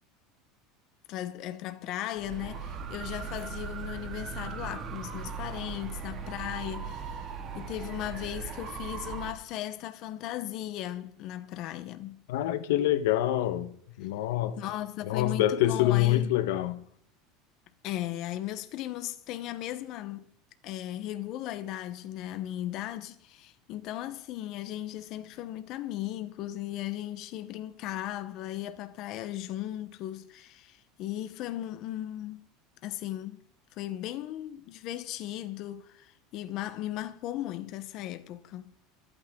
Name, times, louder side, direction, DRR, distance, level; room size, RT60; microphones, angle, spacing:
voice 1, 1.1-12.2 14.6-16.3 17.8-20.2 20.6-32.5 32.8-33.4 33.7-38.7, left 13 dB, 40° left, 0.8 m, -37 dB
sound 1, 2.2-9.3, right 5 dB, 25° right, 1.8 m, -38 dB
voice 2, 12.3-14.6 15.1-16.8, left 13 dB, 80° left, 1.1 m, -26 dB
25.0 x 9.0 x 3.7 m
cardioid pair, 175°, 0 cm